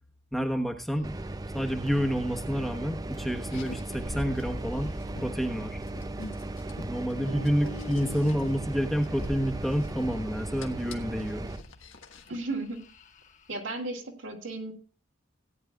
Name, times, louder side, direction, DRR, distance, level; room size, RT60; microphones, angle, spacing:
voice 1, 0.3-1.2 1.5-4.9 5.2-5.8 6.9-11.5, equal, ahead, 3 dB, 1.1 m, -29 dB
sound 1, 0.9-13.6, equal, 40° left, 1.3 m, -46 dB
sound 2, 1.0-11.6, right 2 dB, 20° right, 0.4 m, -37 dB
Car, 3.4-12.4, left 2 dB, 80° left, 1.5 m, -45 dB
voice 2, 7.3-7.8 12.3-12.8 13.5-14.7, right 2 dB, 70° right, 3 dB, 2.7 m, -35 dB
17.5 x 10.0 x 2.4 m, 0.36 s
head